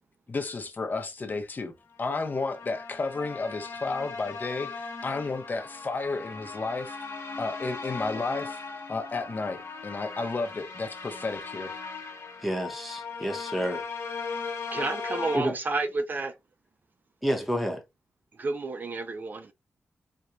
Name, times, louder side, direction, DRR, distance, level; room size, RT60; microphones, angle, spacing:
voice 1, 0.3-1.7 2.0-7.0 7.4-8.6 8.9-11.8, left 3 dB, 40° left, 0.7 m, -32 dB
sound 1, 2.0-15.4, left 4 dB, 60° left, 1.1 m, -38 dB
voice 2, 12.4-13.8 15.3-15.5 17.2-17.8, equal, ahead, 0.8 m, -29 dB
voice 3, 14.7-16.3 18.4-19.5, right 3 dB, 40° right, 0.4 m, -30 dB
4.3 x 2.2 x 2.3 m
wide cardioid pair, 140°, 5 cm